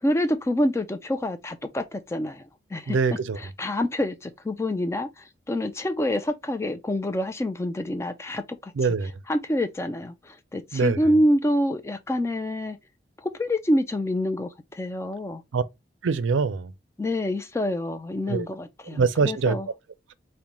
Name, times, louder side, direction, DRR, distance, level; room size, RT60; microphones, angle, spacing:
voice 1, 0.0-8.7 9.3-12.8 13.2-15.4 17.0-19.0 19.2-19.7, left 1 dB, 15° left, 0.3 m, -27 dB
voice 2, 2.9-3.4 8.8-9.1 10.7-11.0 15.5-15.6 16.0-16.7 18.3-18.5 18.9-19.6, right 5 dB, 85° right, 0.4 m, -23 dB
5.2 x 2.1 x 2.9 m
head